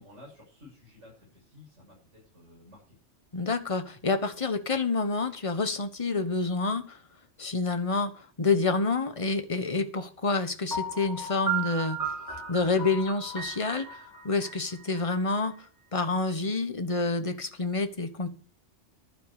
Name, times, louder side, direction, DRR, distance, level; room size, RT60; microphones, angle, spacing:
voice 1, 0.0-3.0, left 2 dB, 75° right, -4 dB, 7.5 m, -53 dB
voice 2, 3.3-7.0 7.4-8.1 8.4-12.0 12.5-15.5 15.9-18.3, left 3 dB, 30° left, 8 dB, 1.3 m, -28 dB
Piano, 10.7-15.6, right 4 dB, 15° right, 5.4 m, -35 dB
12.0 x 9.1 x 6.7 m, 0.41 s
omnidirectional pair, 1.2 m